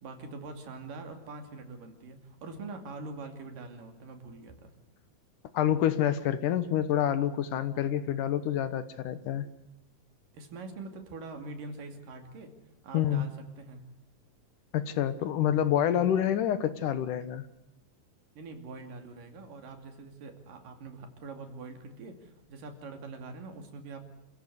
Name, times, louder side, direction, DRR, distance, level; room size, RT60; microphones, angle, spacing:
voice 1, 0.0-4.7 10.3-12.5 12.8-13.8 18.4-24.1, right 3 dB, 75° right, 5 dB, 4.2 m, -44 dB
voice 2, 5.5-9.5 12.9-13.3 14.7-17.5, left 10 dB, 70° left, 12 dB, 2.6 m, -27 dB
28.0 x 16.0 x 8.1 m, 0.88 s
omnidirectional pair, 3.9 m